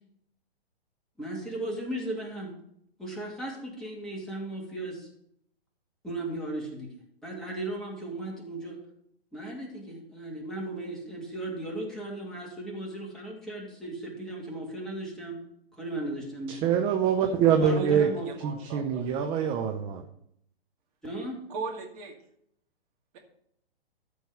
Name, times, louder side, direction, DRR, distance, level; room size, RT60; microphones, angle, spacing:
voice 1, 1.2-2.5 3.0-5.1 6.0-6.9 7.2-8.8 9.3-15.4 15.7-16.6 17.6-18.3 21.0-21.4, right 1 dB, ahead, -4 dB, 2.7 m, -36 dB
voice 2, 16.5-18.1 18.4-20.1, right 8 dB, 15° right, 5 dB, 0.6 m, -25 dB
voice 3, 18.3-19.2 21.5-22.1, right 4 dB, 35° right, 0 dB, 2.4 m, -39 dB
13.5 x 4.7 x 6.7 m, 0.71 s
figure-of-eight pair, 120°, 31 cm